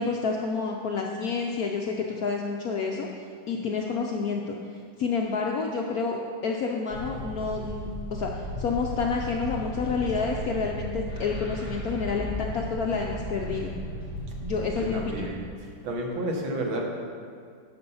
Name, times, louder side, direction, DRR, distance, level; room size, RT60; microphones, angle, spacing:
voice 1, 0.0-4.6 5.0-13.7 14.4-15.3, left 4 dB, 75° left, 0 dB, 0.8 m, -29 dB
sound 1, 6.9-15.3, equal, 45° right, 3.3 m, -35 dB
voice 2, 14.9-16.8, right 1 dB, 75° right, 0 dB, 2.0 m, -31 dB
12.0 x 5.2 x 5.5 m, 2.2 s
omnidirectional pair, 2.3 m